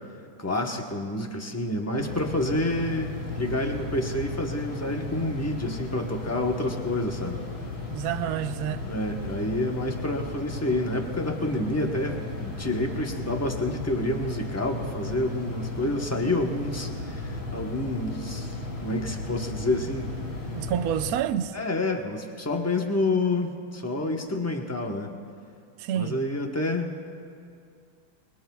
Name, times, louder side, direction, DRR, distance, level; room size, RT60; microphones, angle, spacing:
voice 1, 0.4-7.4 8.8-18.5 18.8-20.2 21.5-25.1 25.9-27.1, left 1 dB, 15° left, 0.6 m, -28 dB
sound 1, 2.0-21.2, left 2 dB, 80° left, 3.6 m, -35 dB
voice 2, 7.9-8.8 20.5-21.6 25.8-26.2, right 10 dB, 85° right, 0.8 m, -28 dB
28.0 x 21.0 x 2.3 m
omnidirectional pair, 2.2 m